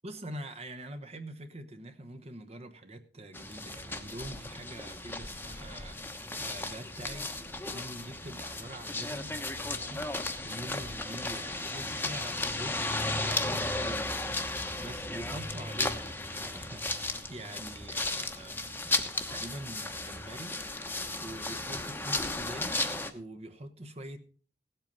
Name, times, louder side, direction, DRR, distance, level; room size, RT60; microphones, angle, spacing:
voice 1, 0.0-7.3 7.6-22.9 23.1-24.2, right 1 dB, 35° right, 1.1 m, -45 dB
sound 1, 3.3-23.1, left 2 dB, 10° left, 1.0 m, -35 dB
17.0 x 8.1 x 5.3 m
head